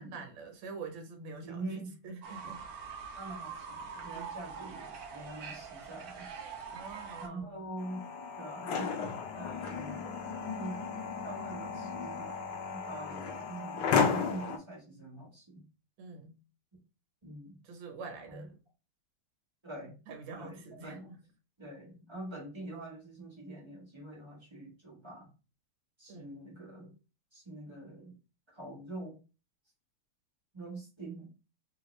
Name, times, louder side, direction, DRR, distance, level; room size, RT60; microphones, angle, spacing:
voice 1, 0.0-2.6 4.1-4.3 6.7-7.6 16.0-16.4 17.6-18.6 20.1-21.0 26.1-26.3, right 4 dB, 65° right, 1.5 m, -45 dB
voice 2, 1.4-2.0 3.1-6.3 7.2-8.1 8.4-10.0 10.4-10.8 11.2-12.3 12.7-15.6 17.2-17.6 18.3-18.5 19.6-19.9 20.3-21.2 21.6-25.3 26.0-26.9 27.3-28.2 28.5-29.2 30.5-31.3, right 2 dB, 25° right, 0.6 m, -44 dB
Fowl / Bird, 2.2-7.3, right 6 dB, 90° right, 0.8 m, -44 dB
sound 1, 7.8-14.6, left 6 dB, 75° left, 1.0 m, -34 dB
3.5 x 2.4 x 3.0 m
omnidirectional pair, 2.4 m